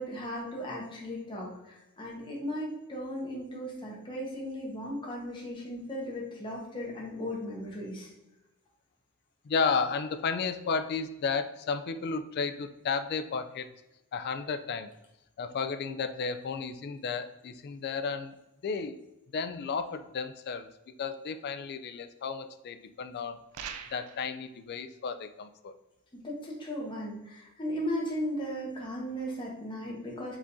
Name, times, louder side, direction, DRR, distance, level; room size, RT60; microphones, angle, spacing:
voice 1, 0.0-8.1 26.1-30.4, equal, 20° left, -4 dB, 1.1 m, -36 dB
voice 2, 9.4-13.7 14.1-14.9 15.4-18.3 18.6-19.0 19.3-20.7 21.0-23.4 23.9-25.7, left 5 dB, 45° left, 9 dB, 0.3 m, -33 dB
sound 1, 23.5-24.3, right 7 dB, 85° right, 0.4 m, -41 dB
4.9 x 3.6 x 2.6 m, 0.93 s
head